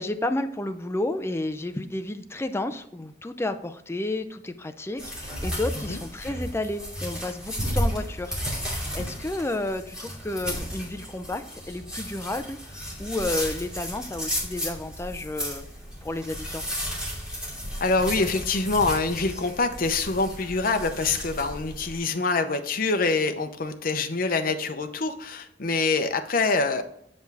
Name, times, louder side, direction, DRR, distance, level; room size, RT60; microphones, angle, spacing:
voice 1, 0.0-12.6 13.0-15.7 16.0-16.7, left 2 dB, 15° left, 9 dB, 0.5 m, -31 dB
sound 1, 5.0-22.0, equal, 5° right, 2.6 m, -33 dB
voice 2, 17.8-26.8, left 3 dB, 55° left, 7 dB, 0.7 m, -25 dB
7.6 x 5.3 x 3.4 m, 0.73 s
head